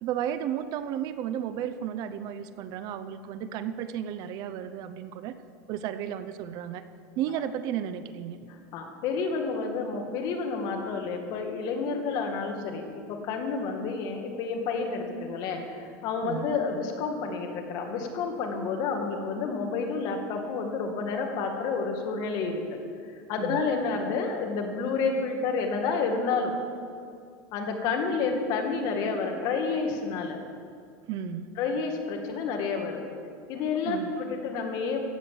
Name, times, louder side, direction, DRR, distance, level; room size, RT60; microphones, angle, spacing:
voice 1, 0.0-5.4 5.7-6.8 7.2-8.4 16.2-16.5 23.4-23.6 31.1-31.5 33.8-34.2, right 10 dB, 45° right, 11 dB, 0.7 m, -33 dB
voice 2, 8.5-22.8 23.1-26.6 27.5-30.4 31.6-33.1 33.5-35.0, left 4 dB, 45° left, 3 dB, 2.1 m, -30 dB
15.5 x 7.9 x 7.7 m, 2.3 s
supercardioid pair, 150°, 9 cm